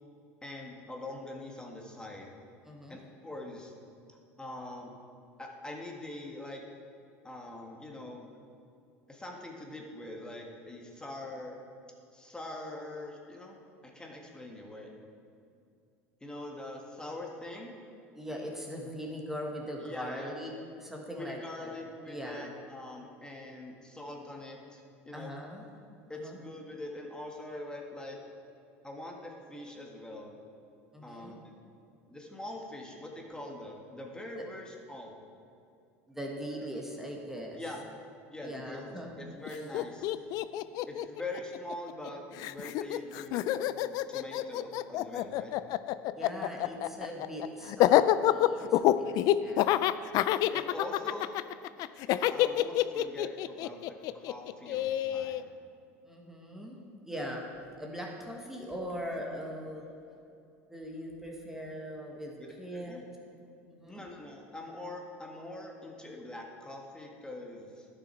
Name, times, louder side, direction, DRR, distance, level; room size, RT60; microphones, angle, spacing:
voice 1, 0.4-2.3 2.9-3.7 4.1-4.9 5.4-6.6 7.2-8.2 9.1-11.6 12.1-14.9 16.2-17.7 19.8-20.3 21.1-25.3 26.1-28.2 28.8-30.3 31.0-31.5 32.1-35.1 37.5-37.8 38.3-40.1 40.9-43.5 44.1-45.5 50.5-51.3 52.3-55.5 62.4-63.0 63.9-67.9, left 1 dB, 10° left, 0 dB, 1.5 m, -43 dB
voice 2, 2.6-3.0 18.1-20.5 20.8-21.7 22.1-22.5 25.1-25.6 26.1-26.4 30.9-31.4 36.1-37.6 38.4-39.2 39.5-39.8 46.2-49.7 56.0-56.8 57.0-57.5 57.7-59.9 60.7-63.2 63.4-64.0, equal, 5° right, 0 dB, 1.5 m, -41 dB
Laughter, 39.4-39.5 39.7-42.1 42.4-55.4, left 14 dB, 55° left, 0.3 m, -27 dB
11.0 x 6.3 x 4.5 m, 2.5 s
hypercardioid pair, 85°, 8 cm